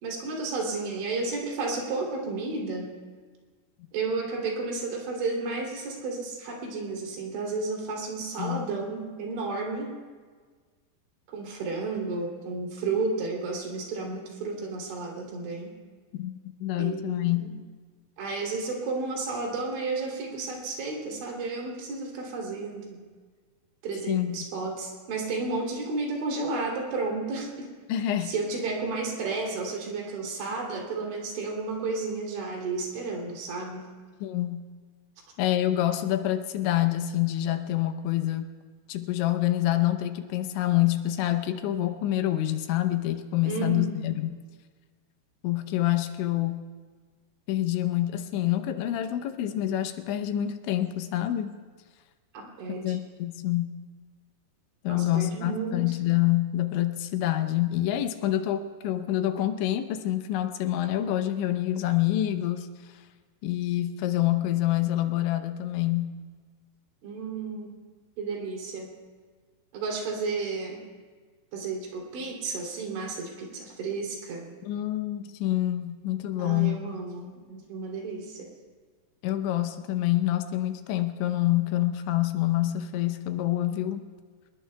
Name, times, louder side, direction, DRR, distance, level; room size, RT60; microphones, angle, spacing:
voice 1, 0.0-2.9 3.9-10.0 11.3-15.8 16.8-17.6 18.2-23.1 23.8-27.7 28.0-33.9 43.4-44.1 52.3-53.0 54.9-55.9 67.0-67.8 68.2-68.9 69.7-70.8 71.5-74.6 76.4-78.5, right 3 dB, 80° right, 0 dB, 5.3 m, -32 dB
voice 2, 16.6-17.4 24.1-24.4 27.9-28.3 34.2-34.6 35.4-38.5 38.9-44.4 45.4-46.6 47.5-51.5 52.8-53.7 54.8-62.7 63.4-66.1 74.6-76.8 79.2-84.1, left 13 dB, 85° left, 8 dB, 3.2 m, -27 dB
26.0 x 20.0 x 2.3 m, 1.5 s
omnidirectional pair, 5.2 m